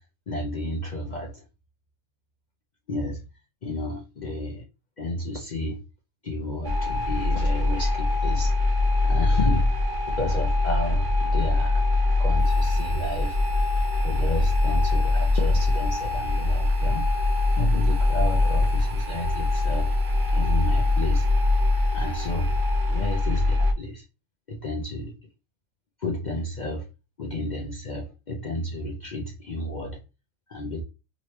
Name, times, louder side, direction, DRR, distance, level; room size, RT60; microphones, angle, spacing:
voice 1, 0.3-1.4 2.9-3.2 3.6-4.6 5.0-5.8 6.2-8.6 9.0-9.7 10.1-11.8 12.2-13.4 14.0-17.1 17.6-19.9 20.3-21.3 21.9-22.5 22.9-24.0 24.5-25.1 26.0-26.9 27.2-30.0 30.5-30.8, left 1 dB, 60° left, 0.4 m, -31 dB
sound 1, 6.6-23.7, left 2 dB, 50° right, 0.6 m, -23 dB
Harmonica, 12.4-23.4, right 2 dB, 80° right, 1.6 m, -51 dB
3.0 x 3.0 x 3.1 m
omnidirectional pair, 1.5 m